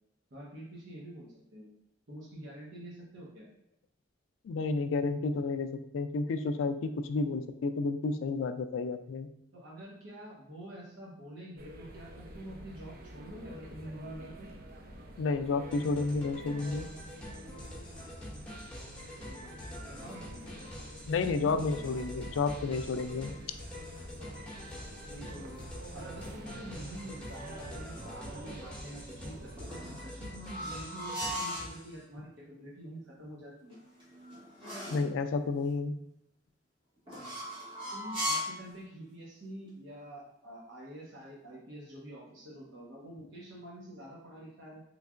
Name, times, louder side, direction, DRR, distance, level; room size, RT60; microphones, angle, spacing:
voice 1, 0.3-1.8 2.1-3.5 9.5-14.5 19.2-19.3 19.9-20.7 21.3-21.8 25.1-25.6 25.9-33.8 37.9-44.8, right 1 dB, 70° right, -5 dB, 0.9 m, -47 dB
voice 2, 4.4-9.3 15.2-16.9 21.1-23.3 34.9-35.9, left 4 dB, 90° left, 9 dB, 0.3 m, -31 dB
sound 1, 11.6-29.7, right 1 dB, 50° right, 0.5 m, -48 dB
sound 2, 15.7-32.0, equal, 5° left, 0.8 m, -46 dB
sound 3, 29.6-31.7 33.7-35.1 37.1-38.6, equal, 25° right, 1.1 m, -37 dB
3.6 x 3.2 x 2.4 m, 0.78 s
head